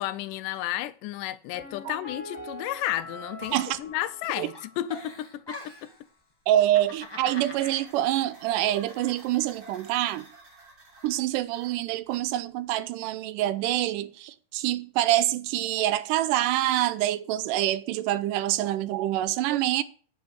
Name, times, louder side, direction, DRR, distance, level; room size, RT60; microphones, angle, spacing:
voice 1, 0.0-5.9, left 14 dB, 80° left, 2.1 m, -32 dB
Piano, 1.5-5.3 5.6-5.7, left 1 dB, 20° right, 5.8 m, -43 dB
Giggle, 3.4-4.2 4.5-6.0 6.5-7.8, left 2 dB, 30° left, 0.4 m, -42 dB
sound 1, 6.5-12.6, right 2 dB, 35° right, 3.5 m, -51 dB
voice 2, 6.5-10.3 11.0-19.8, right 13 dB, 80° right, 2.2 m, -26 dB
9.4 x 6.6 x 6.6 m
omnidirectional pair, 3.9 m